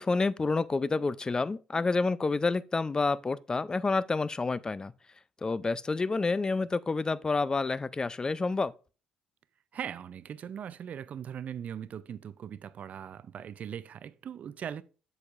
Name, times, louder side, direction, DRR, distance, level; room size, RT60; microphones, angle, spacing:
voice 1, 0.0-4.9 5.4-8.7, left 3 dB, 25° left, 0.4 m, -29 dB
voice 2, 9.7-14.8, right 8 dB, 55° right, 0.5 m, -40 dB
7.9 x 7.1 x 2.5 m
supercardioid pair, 65°, 3 cm